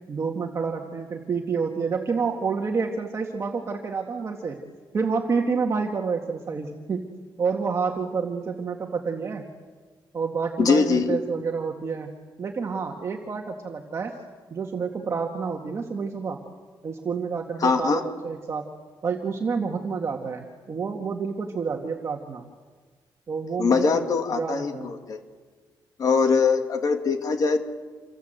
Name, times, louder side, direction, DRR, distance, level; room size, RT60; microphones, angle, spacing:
voice 1, 0.1-4.6 4.9-7.1 7.4-9.4 10.1-12.1 12.4-14.1 14.5-16.4 16.8-18.7 19.0-22.4 23.3-24.9, right 5 dB, 35° right, 1 dB, 2.0 m, -29 dB
voice 2, 10.6-11.2 17.6-18.0 23.6-25.2 26.0-27.6, left 5 dB, 50° left, 5 dB, 2.6 m, -22 dB
28.0 x 26.0 x 8.0 m, 1.4 s
wide cardioid pair, 155°, 8 cm